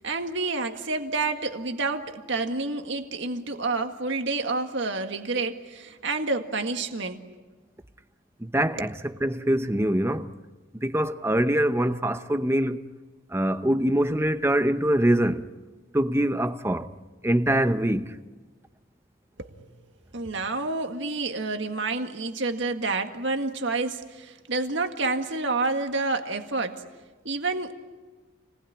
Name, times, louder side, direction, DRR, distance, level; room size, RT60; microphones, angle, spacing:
voice 1, 0.0-7.2 19.4-19.5 20.1-26.8 27.3-27.7, right 3 dB, 65° right, 1.9 m, -29 dB
voice 2, 8.4-10.3 10.7-12.8 13.3-15.5 15.9-16.9 17.2-18.2, right 1 dB, 15° right, 0.8 m, -24 dB
29.5 x 20.0 x 10.0 m
head